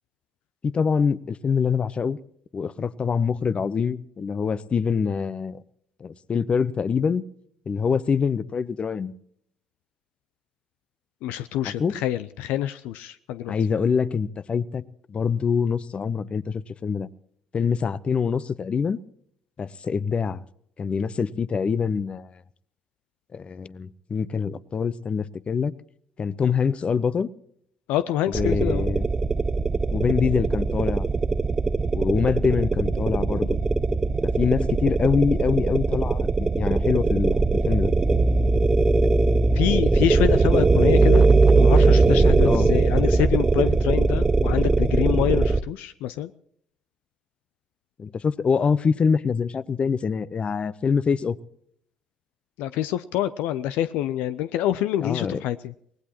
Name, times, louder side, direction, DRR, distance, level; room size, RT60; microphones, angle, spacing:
voice 1, 0.6-2.2 2.5-5.6 6.0-7.2 7.7-9.1 11.8-12.0 13.5-14.8 15.1-17.1 17.5-19.0 19.6-20.4 20.8-22.3 23.3-25.7 26.2-27.3 28.3-29.0 29.9-31.1 31.9-33.6 34.2-37.9 42.4-42.7 48.0-51.4 55.0-55.4, left 6 dB, 40° left, 18 dB, 0.8 m, -25 dB
voice 2, 11.2-13.5 27.9-28.9 39.5-41.2 41.6-46.3 52.6-55.7, left 12 dB, 70° left, 13 dB, 0.5 m, -26 dB
sound 1, 28.3-45.6, right 3 dB, 25° right, 0.8 m, -20 dB
24.5 x 18.5 x 3.0 m, 0.69 s
hypercardioid pair, 55°, 3 cm